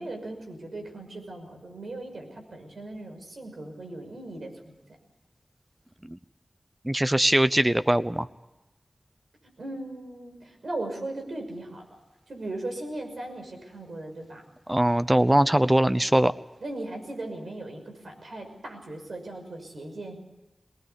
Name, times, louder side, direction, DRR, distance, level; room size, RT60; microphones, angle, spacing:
voice 1, 0.0-4.8 9.6-11.8 12.3-14.4 16.6-20.1, right 2 dB, 80° right, 3 dB, 6.0 m, -38 dB
voice 2, 6.8-8.3 14.7-16.3, right 1 dB, 20° right, 13 dB, 0.7 m, -21 dB
23.0 x 19.5 x 8.4 m, 0.96 s
wide cardioid pair, 60°, 0 cm